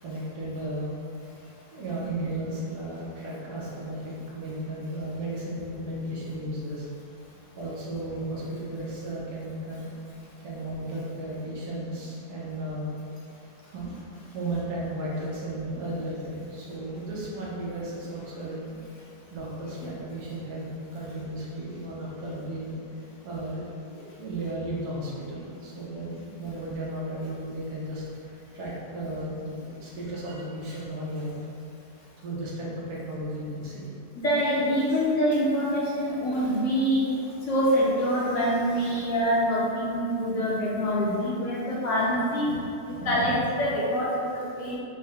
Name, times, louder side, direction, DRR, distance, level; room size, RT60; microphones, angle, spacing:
voice 1, 0.0-0.9 1.7-6.9 7.6-9.9 10.4-13.0 13.7-13.9 14.3-18.8 19.3-22.8 23.2-28.0 28.5-31.4 32.2-33.9, right 1 dB, 80° right, -6 dB, 1.5 m, -34 dB
voice 2, 34.2-37.1 37.4-44.8, equal, 60° left, -7 dB, 0.9 m, -25 dB
5.0 x 2.2 x 3.5 m, 2.5 s
omnidirectional pair, 1.7 m